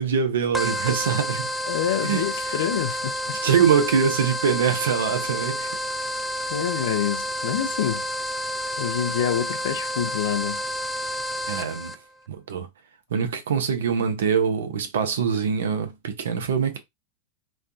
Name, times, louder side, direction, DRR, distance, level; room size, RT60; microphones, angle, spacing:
voice 1, 0.0-1.5 2.0-2.2 3.4-5.7 11.5-12.0 12.3-12.7 13.1-16.8, right 7 dB, 85° right, 0.8 m, -23 dB
sound 1, 0.5-12.0, equal, ahead, 0.4 m, -29 dB
voice 2, 1.7-3.4 6.5-8.0 8.8-10.6, left 10 dB, 75° left, 0.5 m, -27 dB
3.2 x 2.3 x 2.6 m
hypercardioid pair, 120°, 0 cm